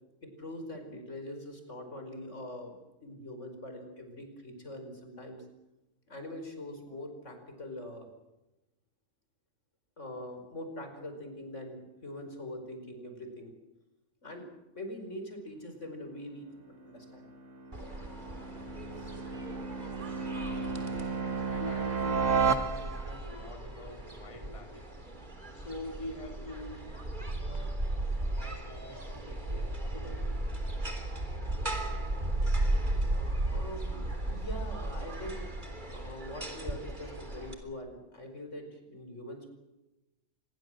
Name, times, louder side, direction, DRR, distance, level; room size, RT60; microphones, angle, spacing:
voice 1, 0.2-2.7 3.0-5.4 6.1-8.1 10.0-13.5 14.2-14.5 14.7-16.5 16.8-17.3 19.0-19.1 33.5-35.5 35.9-39.5, left 1 dB, 75° left, 6 dB, 5.5 m, -43 dB
sound 1, 16.9-23.3, right 5 dB, 75° right, 1.9 m, -33 dB
sound 2, 17.7-37.5, right 1 dB, 40° right, 3.7 m, -36 dB
voice 2, 20.0-21.1 21.5-24.9 25.5-27.0 28.3-30.5, left 1 dB, 25° left, 4 dB, 2.9 m, -45 dB
26.5 x 21.5 x 7.8 m, 1.0 s
omnidirectional pair, 1.3 m